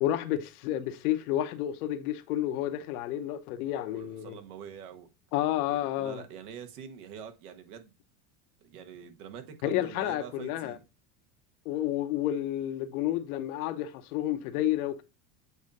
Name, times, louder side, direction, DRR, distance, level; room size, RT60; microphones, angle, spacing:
voice 1, 0.0-4.3 5.3-6.2 9.6-10.7 11.6-15.0, left 13 dB, 80° left, 1.0 m, -30 dB
voice 2, 3.9-5.1 5.7-7.9 8.6-10.8, right 8 dB, 90° right, 1.4 m, -45 dB
8.1 x 2.8 x 5.2 m
supercardioid pair, 145°, 44 cm